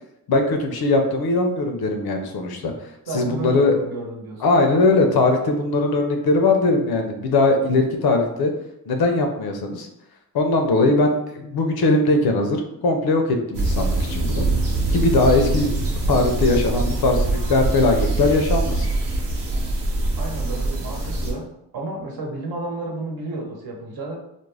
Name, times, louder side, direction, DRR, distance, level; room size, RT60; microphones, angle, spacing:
voice 1, 0.3-2.7 3.1-3.7 4.4-8.5 8.9-9.9 10.3-13.2 13.5-14.5 14.9-15.7 16.1-18.9, left 2 dB, 65° left, 4 dB, 0.6 m, -20 dB
voice 2, 3.1-4.4 20.2-21.5 21.7-24.2, right 2 dB, 65° right, -1 dB, 0.9 m, -31 dB
sound 1, 13.5-21.3, right 2 dB, 90° right, 0.8 m, -23 dB
2.5 x 2.1 x 3.2 m, 0.81 s
cardioid pair, 75°, 40 cm